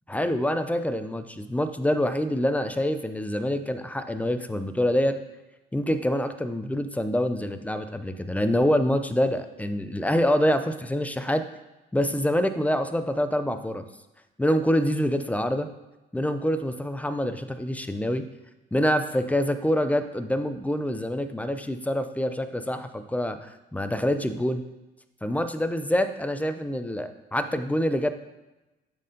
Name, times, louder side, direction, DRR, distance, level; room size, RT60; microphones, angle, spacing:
voice 1, 0.1-5.2 5.7-11.4 11.9-13.8 14.4-15.7 16.1-18.2 18.7-24.6 25.2-28.1, equal, 5° left, 9 dB, 0.5 m, -26 dB
7.1 x 4.3 x 5.2 m, 1.0 s
cardioid pair, 90°, 20 cm